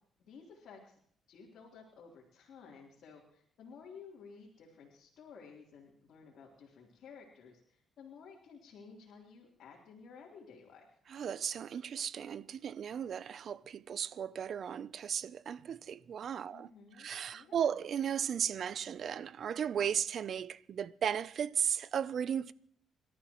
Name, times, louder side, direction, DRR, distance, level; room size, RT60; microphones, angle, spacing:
voice 1, 0.2-1.0 1.3-10.9 16.5-17.8, left 5 dB, 70° left, 3.5 m, -54 dB
voice 2, 11.1-16.7 17.0-22.5, right 8 dB, 60° right, 0.6 m, -35 dB
28.5 x 13.0 x 3.1 m
cardioid pair, 90°, 0 cm